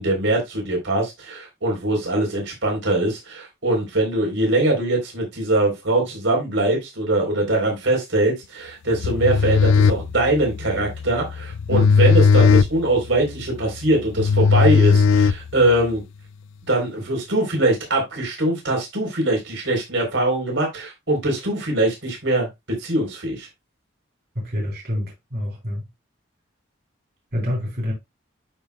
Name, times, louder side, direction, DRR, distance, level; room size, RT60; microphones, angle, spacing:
voice 1, 0.0-16.0 16.7-22.5 22.8-23.5, right 1 dB, 75° right, 3.8 m, -22 dB
sound 1, 9.0-15.9, left 5 dB, 80° left, 0.3 m, -18 dB
voice 2, 24.3-25.9 27.3-27.9, left 1 dB, 55° right, 3.5 m, -27 dB
11.5 x 5.2 x 2.3 m
head